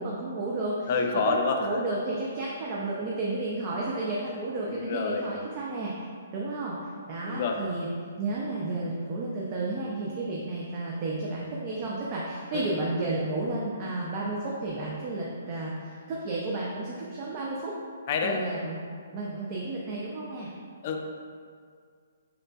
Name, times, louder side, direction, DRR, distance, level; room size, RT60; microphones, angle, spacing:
voice 1, 0.0-6.1 6.3-7.9 8.2-17.8 18.2-18.8 19.1-20.5, right 2 dB, 30° right, -4 dB, 0.5 m, -32 dB
voice 2, 0.9-1.6 4.7-5.3 7.2-7.6 12.5-12.7 18.1-18.4 20.8-21.0, left 5 dB, 40° left, 2 dB, 0.4 m, -28 dB
5.4 x 3.8 x 2.3 m, 2.1 s
hypercardioid pair, 155°, 0 cm